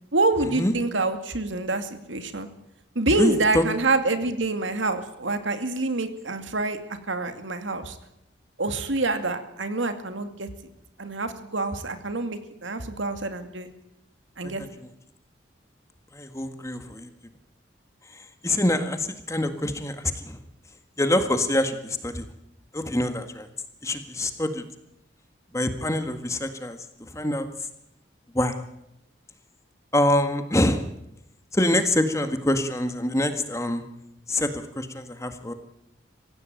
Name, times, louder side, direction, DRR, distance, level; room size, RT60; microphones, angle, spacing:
voice 1, 0.1-2.5 2.9-6.8 7.1-8.0 8.6-10.5 11.0-13.7 14.4-14.6, right 2 dB, 85° right, 8 dB, 2.4 m, -26 dB
voice 2, 3.1-3.6 14.4-14.7 16.1-17.1 18.1-20.4 21.0-22.2 22.7-23.5 23.8-24.6 25.5-26.8 27.1-27.5 28.3-28.5 29.9-30.8 31.5-33.8 34.3-35.5, left 1 dB, 15° left, 8 dB, 1.7 m, -25 dB
25.0 x 16.0 x 9.1 m, 0.83 s
head